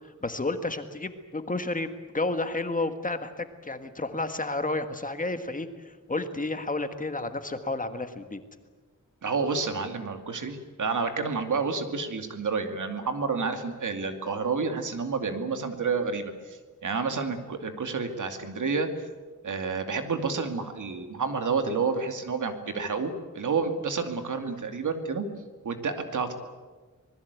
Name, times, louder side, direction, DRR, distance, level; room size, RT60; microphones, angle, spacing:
voice 1, 0.0-8.4, left 2 dB, 25° left, 8 dB, 1.6 m, -31 dB
voice 2, 9.2-18.9 19.4-25.3 25.6-26.3, right 4 dB, 75° right, 7 dB, 2.5 m, -29 dB
26.0 x 20.5 x 8.3 m, 1.4 s
wide cardioid pair, 155°, 31 cm